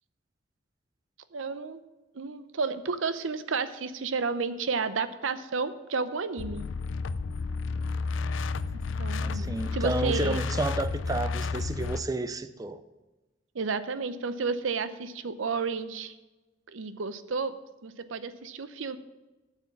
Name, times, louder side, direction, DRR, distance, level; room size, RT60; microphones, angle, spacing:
voice 1, 1.3-1.8 2.1-6.6 9.0-10.4 13.5-16.2 16.7-17.5 17.8-19.0, right 4 dB, 85° right, 0.7 m, -31 dB
sound 1, 6.4-12.0, left 4 dB, 75° left, 0.4 m, -31 dB
voice 2, 9.2-12.8, right 2 dB, 20° right, 0.5 m, -31 dB
7.9 x 7.1 x 7.2 m
head